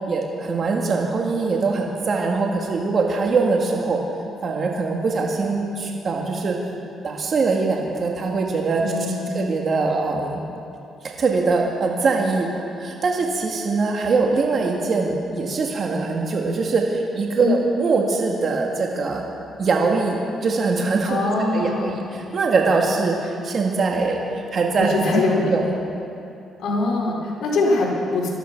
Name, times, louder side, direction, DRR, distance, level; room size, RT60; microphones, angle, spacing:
voice 1, 0.1-4.0 4.4-6.6 7.0-8.8 9.1-10.4 11.2-12.5 12.8-19.2 19.6-21.2 21.5-24.9 25.4-25.7, right 4 dB, 50° right, 0 dB, 1.9 m, -22 dB
voice 2, 8.8-9.3 17.4-17.6 21.1-22.1 24.8-25.5 26.6-28.3, left 2 dB, 70° left, -4 dB, 4.4 m, -22 dB
19.0 x 12.5 x 6.0 m, 2.8 s
cardioid pair, 90°, 0 cm